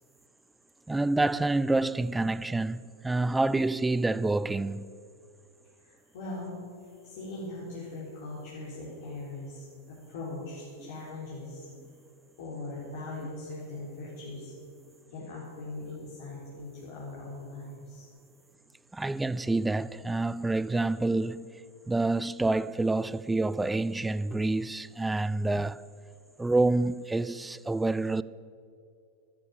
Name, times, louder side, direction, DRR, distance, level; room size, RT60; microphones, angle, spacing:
voice 1, 0.9-4.9 18.9-21.5 21.9-25.8 26.4-28.2, right 2 dB, 10° right, 0.4 m, -27 dB
voice 2, 5.6-11.7 12.4-14.5 15.1-18.1, left 2 dB, 55° left, 4.1 m, -40 dB
13.5 x 12.5 x 7.3 m
figure-of-eight pair, 90°, 0 cm